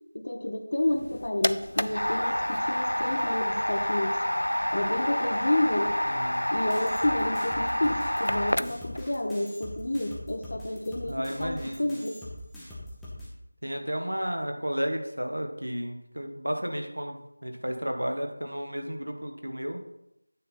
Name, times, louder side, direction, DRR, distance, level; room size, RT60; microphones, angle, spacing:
voice 1, 0.1-4.2 4.7-5.9 6.5-12.2, left 1 dB, 50° left, 6 dB, 0.9 m, -30 dB
sound 1, 0.9-9.0, equal, 85° left, 0.4 m, -28 dB
voice 2, 6.1-6.5 11.1-11.9 13.6-19.8, equal, 85° right, 4 dB, 1.4 m, -33 dB
sound 2, 6.7-13.3, left 1 dB, 5° left, 0.8 m, -43 dB
9.1 x 4.3 x 4.3 m, 0.82 s
figure-of-eight pair, 170°, 0 cm